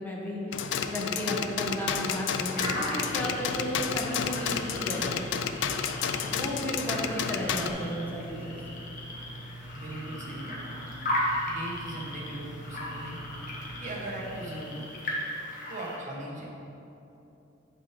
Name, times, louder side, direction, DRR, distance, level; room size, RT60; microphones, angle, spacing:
voice 1, 0.0-5.0 6.2-8.6, equal, 10° left, -4 dB, 0.9 m, -34 dB
sound 1, 0.5-7.7, left 7 dB, 70° left, 0.4 m, -31 dB
sound 2, 2.5-16.0, left 1 dB, 45° left, 1.2 m, -37 dB
sound 3, 2.6-14.5, right 1 dB, 60° right, 1.2 m, -44 dB
voice 2, 9.7-10.6 11.5-13.2 13.8-15.2 15.7-16.7, right 1 dB, 45° right, -2 dB, 1.0 m, -39 dB
8.1 x 5.9 x 3.1 m, 2.9 s
head